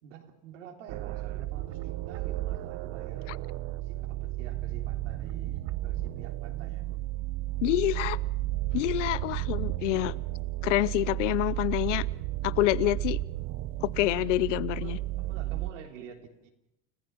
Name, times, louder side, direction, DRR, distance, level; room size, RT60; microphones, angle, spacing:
voice 1, 0.0-3.5 3.8-6.8 14.8-16.5, right 7 dB, 85° right, 2 dB, 3.5 m, -49 dB
sound 1, 0.9-15.7, right 16 dB, 50° right, 0.9 m, -33 dB
voice 2, 7.6-8.2 8.7-10.1 10.6-12.0 12.4-13.2 13.8-15.0, left 17 dB, 80° left, 20 dB, 0.8 m, -27 dB
29.5 x 15.0 x 6.1 m, 0.90 s
supercardioid pair, 110°, 36 cm